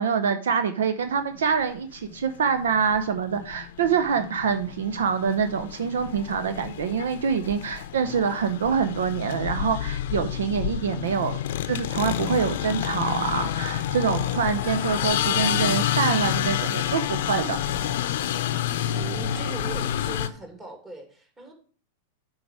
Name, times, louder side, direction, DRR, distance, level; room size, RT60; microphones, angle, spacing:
voice 1, 0.0-11.4 11.7-17.6, right 6 dB, 75° right, 9 dB, 0.6 m, -25 dB
sound 1, 1.5-1.6 2.0-20.3, left 11 dB, 65° left, 0.6 m, -29 dB
voice 2, 18.7-21.5, right 3 dB, 20° right, 2 dB, 2.5 m, -41 dB
8.6 x 4.8 x 4.8 m, 0.43 s
hypercardioid pair, 105°, 0 cm